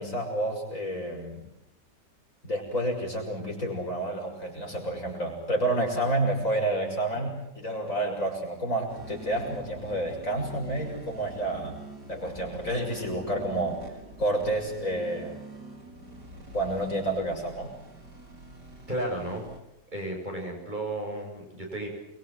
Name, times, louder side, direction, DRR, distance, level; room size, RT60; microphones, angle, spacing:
voice 1, 0.0-1.4 2.4-11.8 12.1-13.8 14.2-15.4 16.5-17.7, right 1 dB, 50° left, 1 dB, 7.1 m, -29 dB
sound 1, 8.9-19.6, right 2 dB, 85° right, 5.9 m, -45 dB
voice 2, 18.9-19.5 19.9-21.9, right 1 dB, 25° right, 0 dB, 8.1 m, -33 dB
29.5 x 24.0 x 7.9 m, 0.83 s
omnidirectional pair, 1.8 m